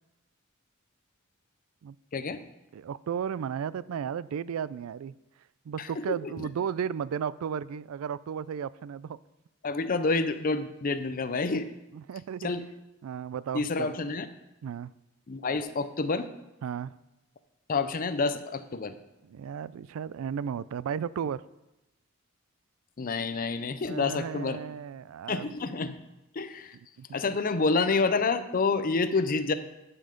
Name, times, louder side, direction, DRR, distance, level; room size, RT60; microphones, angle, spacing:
voice 1, 2.7-5.1 5.7-9.2 11.9-12.5 13.0-13.9 14.6-14.9 16.6-16.9 19.2-21.4 23.9-25.5 27.0-27.1, right 7 dB, 85° right, 19 dB, 0.3 m, -34 dB
voice 2, 5.8-6.2 9.6-11.7 12.4-12.6 13.5-14.3 15.3-16.3 17.7-18.9 23.0-24.6 25.3-26.0 26.3-26.8 27.1-29.5, left 4 dB, 40° left, 10 dB, 0.5 m, -28 dB
10.5 x 5.7 x 5.1 m, 0.96 s
head